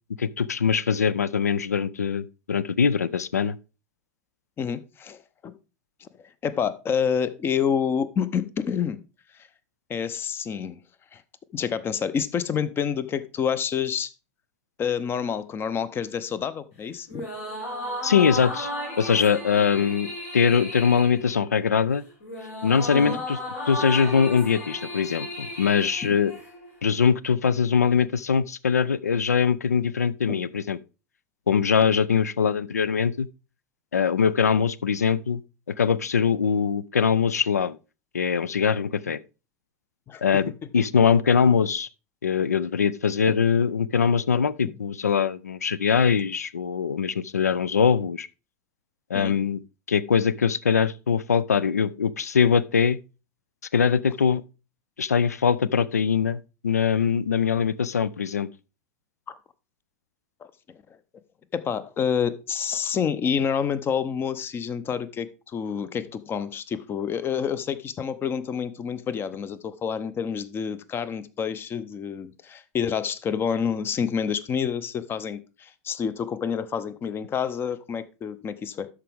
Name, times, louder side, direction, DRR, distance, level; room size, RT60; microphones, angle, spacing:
voice 1, 0.2-3.6 18.0-18.7 19.0-20.1 20.3-22.0 22.6-23.4 23.7-26.3 26.8-30.8 31.5-33.3 33.9-35.4 35.7-37.8 38.1-39.2 40.2-41.9 42.2-48.3 49.1-49.6 49.9-53.0 53.7-54.4 55.0-58.5, left 6 dB, 80° left, 0.4 m, -22 dB
voice 2, 4.6-5.2 5.4-5.6 6.0-6.1 6.4-9.0 9.9-10.8 11.1-11.2 11.5-14.1 14.8-17.3 22.9-23.2 26.0-26.1 30.3-30.4 40.1-40.2 49.1-49.3 59.3-59.4 61.5-78.9, left 7 dB, 25° left, 0.7 m, -28 dB
sound 1, 17.1-26.8, left 1 dB, 65° left, 3.3 m, -35 dB
12.5 x 4.8 x 3.5 m
figure-of-eight pair, 85°, 8 cm